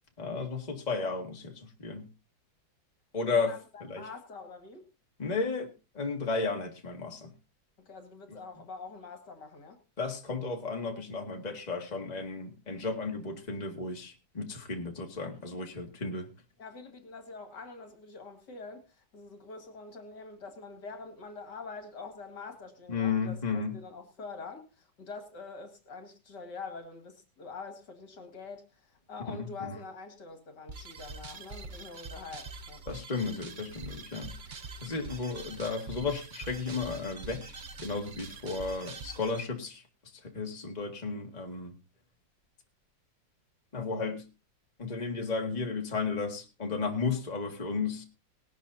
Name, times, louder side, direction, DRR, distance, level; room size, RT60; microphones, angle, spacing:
voice 1, 0.2-2.1 3.1-3.5 3.8-4.1 5.2-7.3 10.0-16.3 22.9-23.7 29.3-29.8 32.9-34.3 34.8-37.5 37.8-39.8 40.2-41.7 43.7-44.2 44.8-48.0, left 4 dB, 20° left, 2 dB, 2.0 m, -33 dB
voice 2, 3.3-4.8 7.8-9.8 16.6-32.8, left 4 dB, 65° left, 6 dB, 2.7 m, -45 dB
sound 1, 30.7-39.4, right 3 dB, 50° right, 0.5 m, -45 dB
19.0 x 12.5 x 2.8 m, 0.29 s
omnidirectional pair, 2.0 m